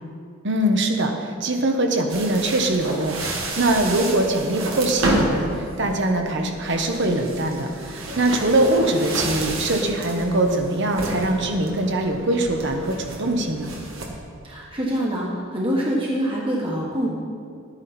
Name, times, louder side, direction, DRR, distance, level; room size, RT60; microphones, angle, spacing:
voice 1, 0.4-13.8, right 1 dB, 60° right, 4 dB, 1.2 m, -22 dB
sound 1, 2.1-14.1, right 2 dB, 80° right, 1.8 m, -30 dB
voice 2, 14.4-17.1, equal, 25° right, -4 dB, 1.5 m, -25 dB
13.0 x 9.5 x 4.4 m, 2.3 s
head